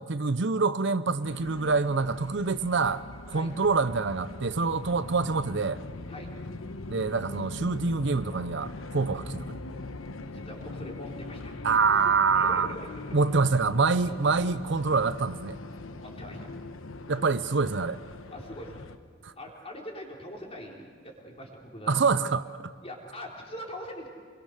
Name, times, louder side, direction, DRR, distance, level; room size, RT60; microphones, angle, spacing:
voice 1, 0.0-5.8 6.9-9.6 11.6-12.7 13.1-15.6 17.1-18.0 19.2-19.3 21.9-22.4, right 4 dB, 60° right, 13 dB, 0.7 m, -26 dB
sound 1, 1.2-19.0, left 2 dB, 85° left, 1.0 m, -41 dB
voice 2, 10.3-11.5 11.9-13.2 14.1-14.2 15.8-16.5 18.3-18.8 19.4-22.1 22.8-24.1, equal, 30° left, -1 dB, 4.0 m, -42 dB
27.0 x 22.5 x 6.6 m, 2.1 s
head